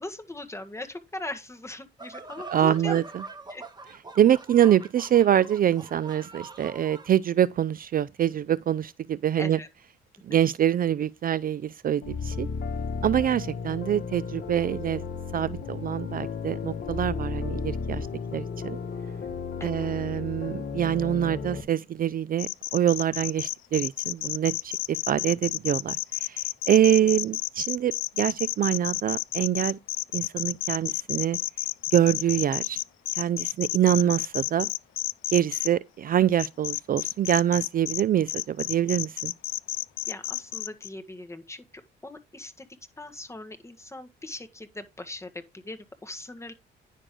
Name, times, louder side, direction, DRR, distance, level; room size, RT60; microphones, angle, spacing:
voice 1, 0.0-3.0 3.5-3.6 9.4-9.7 19.6-19.9 27.0-27.1 34.0-34.1 40.1-42.7 43.0-46.5, left 2 dB, 15° left, 1.6 m, -40 dB
sound 1, 2.0-7.1, right 3 dB, 20° right, 1.8 m, -43 dB
voice 2, 2.5-3.0 4.2-9.6 10.3-12.5 13.0-15.0 15.3-18.1 18.3-18.8 19.6-27.9 28.2-29.8 30.1-31.4 31.9-32.8 33.2-34.7 35.3-39.3, right 10 dB, 45° right, 0.4 m, -25 dB
sound 2, 12.0-21.6, left 5 dB, 55° left, 1.5 m, -34 dB
sound 3, 22.4-35.7 36.4-38.0 38.3-40.9, left 17 dB, 85° left, 0.4 m, -31 dB
10.0 x 6.4 x 3.7 m
cardioid pair, 90°, 20 cm